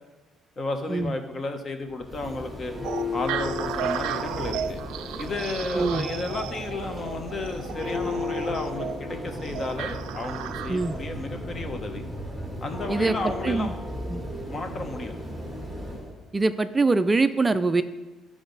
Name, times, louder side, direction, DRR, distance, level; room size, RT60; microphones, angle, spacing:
voice 1, 0.6-2.7 3.1-4.8 5.2-12.0 12.6-13.8 14.1-14.2 14.5-15.1, left 3 dB, 30° left, 6 dB, 1.0 m, -33 dB
Church bell, 1.9-16.1, left 2 dB, 5° left, 1.7 m, -34 dB
sound 1, 2.8-11.0, right 10 dB, 90° right, 0.4 m, -35 dB
voice 2, 5.7-6.1 10.7-10.9 12.9-13.7 14.1-14.2 16.3-17.8, right 3 dB, 20° right, 11 dB, 0.4 m, -23 dB
12.5 x 4.9 x 4.0 m, 1.2 s
cardioid pair, 130°, 0 cm